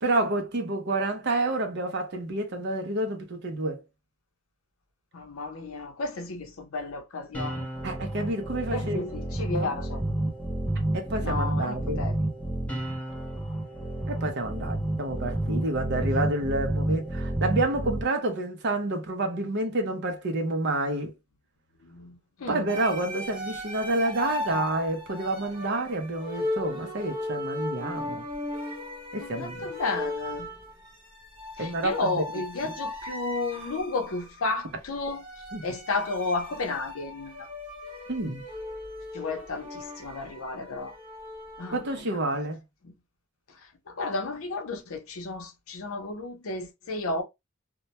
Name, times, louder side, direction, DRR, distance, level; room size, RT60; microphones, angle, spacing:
voice 1, 0.0-3.8 7.8-9.8 10.9-12.0 14.1-21.1 22.5-28.2 29.1-29.7 31.6-32.2 32.6-32.7 35.5-35.6 38.1-38.4 41.7-42.6, right 2 dB, 50° right, 0.6 m, -29 dB
voice 2, 5.1-7.7 8.7-10.0 11.2-12.2 15.2-15.3 21.8-22.7 29.2-30.5 31.6-35.3 35.6-37.5 39.1-41.0 41.6-42.2 42.8-42.9 43.9-47.2, left 3 dB, 70° left, 0.6 m, -33 dB
sound 1, 7.3-18.0, right 1 dB, 5° left, 0.6 m, -30 dB
sound 2, 22.7-42.0, left 1 dB, 25° right, 0.8 m, -37 dB
2.1 x 2.1 x 2.7 m
head